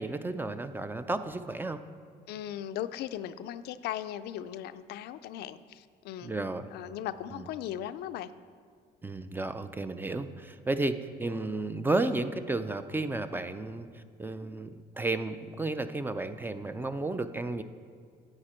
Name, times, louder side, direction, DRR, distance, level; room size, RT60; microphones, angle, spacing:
voice 1, 0.0-1.8 6.2-6.7 7.3-7.5 9.0-17.6, right 2 dB, 10° right, 10 dB, 0.4 m, -33 dB
voice 2, 2.3-6.3 6.7-8.3, left 11 dB, 75° left, 12 dB, 0.4 m, -38 dB
9.6 x 8.8 x 4.4 m, 2.1 s
cardioid pair, 110°, 17 cm